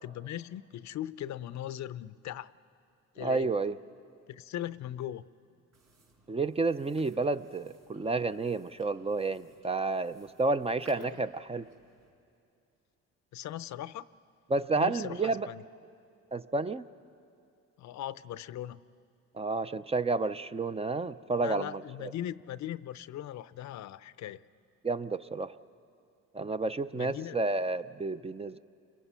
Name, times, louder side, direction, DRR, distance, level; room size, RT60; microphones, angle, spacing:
voice 1, 0.0-2.5 3.1-3.5 4.3-5.2 10.9-11.2 13.3-14.1 14.8-15.6 17.8-18.8 21.4-24.4 26.9-27.4, left 12 dB, 65° left, 16 dB, 0.6 m, -39 dB
voice 2, 3.2-3.8 6.3-11.7 14.5-15.5 16.3-16.8 19.4-22.1 24.8-25.5 26.3-28.6, right 3 dB, 20° right, 12 dB, 0.5 m, -30 dB
sound 1, 5.7-12.1, right 3 dB, 70° right, 5.4 m, -61 dB
29.5 x 22.5 x 5.6 m, 2.5 s
cardioid pair, 90°, 30 cm